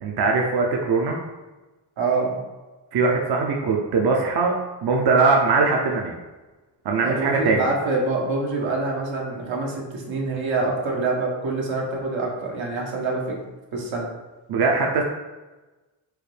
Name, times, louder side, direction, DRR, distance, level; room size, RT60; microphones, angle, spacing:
voice 1, 0.0-1.2 2.9-4.5 4.8-6.2 6.8-7.7 14.5-15.0, right 4 dB, 60° right, 0 dB, 0.6 m, -21 dB
voice 2, 2.0-2.4 7.0-13.4 13.7-14.1, right 3 dB, 80° right, -2 dB, 1.0 m, -25 dB
4.6 x 2.2 x 3.3 m, 1.2 s
cardioid pair, 55°, 46 cm